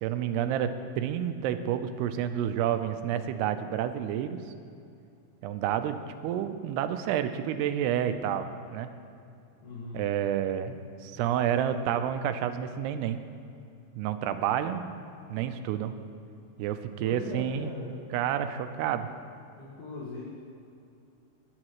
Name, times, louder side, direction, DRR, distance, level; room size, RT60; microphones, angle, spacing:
voice 1, 0.0-4.4 5.4-8.9 9.9-13.2 14.0-14.8 15.3-15.9 16.6-17.7 18.1-19.1, right 10 dB, 85° right, 9 dB, 2.6 m, -29 dB
voice 2, 9.6-10.0 17.0-18.0 19.6-20.2, left 2 dB, 70° left, -7 dB, 3.6 m, -40 dB
21.0 x 9.7 x 3.1 m, 2.6 s
omnidirectional pair, 4.8 m